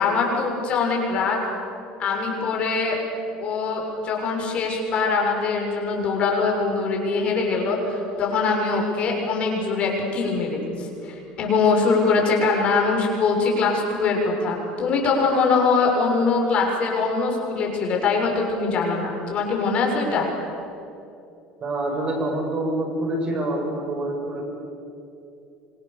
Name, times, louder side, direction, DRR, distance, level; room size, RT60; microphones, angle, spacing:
voice 1, 0.0-1.4 2.0-3.0 3.4-20.3, left 4 dB, 45° left, 0 dB, 6.7 m, -23 dB
voice 2, 21.6-24.4, right 1 dB, 35° right, 2 dB, 6.2 m, -26 dB
27.0 x 26.0 x 6.9 m, 2.7 s
supercardioid pair, 120°, 3 cm